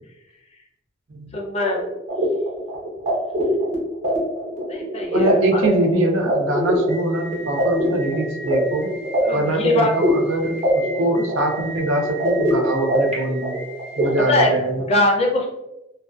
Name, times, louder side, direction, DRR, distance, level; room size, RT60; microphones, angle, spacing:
voice 1, 1.3-1.8 4.5-5.6 9.2-9.9 14.3-14.5 14.9-15.5, left 2 dB, 35° left, 0 dB, 0.4 m, -21 dB
sound 1, 1.6-14.4, equal, 40° right, 0.7 m, -23 dB
voice 2, 5.1-8.9 9.3-10.6 11.0-13.6 14.0-14.9, right 2 dB, 85° right, 2 dB, 0.5 m, -23 dB
2.5 x 2.2 x 2.2 m, 0.95 s
head